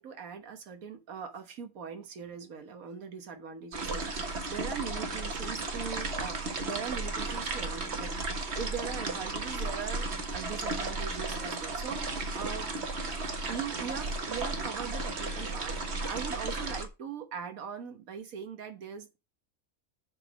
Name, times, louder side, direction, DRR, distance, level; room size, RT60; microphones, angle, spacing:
voice 1, 0.0-12.7 13.5-19.2, right 7 dB, 85° right, 1.6 m, -41 dB
sound 1, 3.7-16.9, right 3 dB, 50° right, 1.6 m, -34 dB
7.4 x 5.3 x 6.2 m
omnidirectional pair, 1.4 m